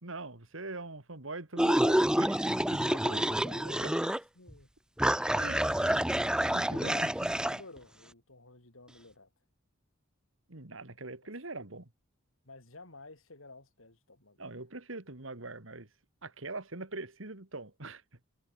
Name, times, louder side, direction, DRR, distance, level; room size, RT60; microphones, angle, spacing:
voice 1, 0.0-3.0 3.8-3.9 5.3-6.0 6.5-7.3 10.5-11.9 14.4-15.9 16.2-18.0, right 2 dB, 75° right, 2.6 m, -43 dB
sound 1, 1.6-4.2 4.5-4.6 5.0-7.6, right 1 dB, 5° right, 0.6 m, -28 dB
voice 2, 2.9-4.7 6.7-9.3 11.2-11.3 12.4-14.5, left 2 dB, 80° left, 5.0 m, -51 dB
head